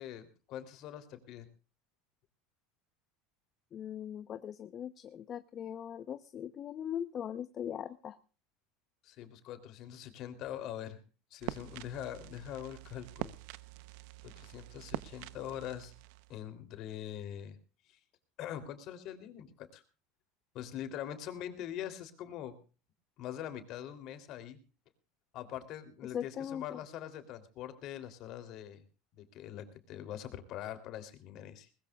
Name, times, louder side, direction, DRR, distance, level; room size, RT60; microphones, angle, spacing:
voice 1, 0.0-1.5 9.0-11.0 11.3-13.3 14.2-15.9 16.3-17.6 17.9-18.0 18.4-19.8 20.5-22.6 23.2-24.6 25.3-28.8 29.1-31.7, left 10 dB, 50° left, 9 dB, 3.2 m, -43 dB
voice 2, 3.7-8.2 26.0-26.8, left 9 dB, 30° left, 11 dB, 0.9 m, -40 dB
sound 1, 11.4-16.4, right 17 dB, 70° right, 0.8 m, -45 dB
21.5 x 20.5 x 2.4 m, 0.36 s
supercardioid pair, 150°, 0 cm